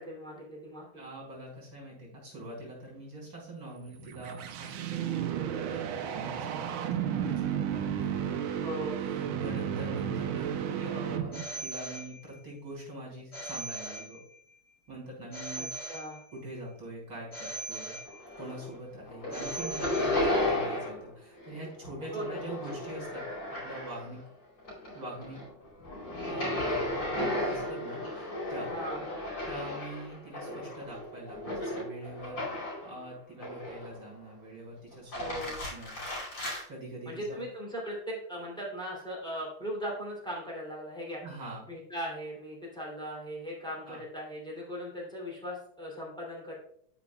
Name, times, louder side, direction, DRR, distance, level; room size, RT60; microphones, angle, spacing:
voice 1, 0.0-1.0 8.5-9.0 15.6-16.2 22.1-22.6 28.7-29.0 35.2-35.6 37.1-41.2 41.7-46.5, equal, ahead, -4 dB, 2.7 m, -39 dB
voice 2, 0.9-8.8 9.0-14.2 14.9-15.7 16.3-18.0 18.4-23.2 23.5-24.2 24.9-25.4 26.2-28.7 29.5-36.0 36.7-37.4 41.2-41.7 43.9-44.0, right 1 dB, 55° right, -3 dB, 4.3 m, -44 dB
sound 1, 3.8-11.6, right 9 dB, 80° right, 1.5 m, -33 dB
Telephone, 11.3-12.6 13.3-14.6 15.3-16.6 17.3-18.6 19.3-20.6, right 1 dB, 50° left, 2.6 m, -41 dB
sound 2, 18.0-18.8 19.0-21.1 21.3-24.2 24.6-32.9 33.4-34.1 34.9-36.6, left 1 dB, 80° left, 3.8 m, -34 dB
12.5 x 5.3 x 2.3 m, 0.65 s
omnidirectional pair, 2.3 m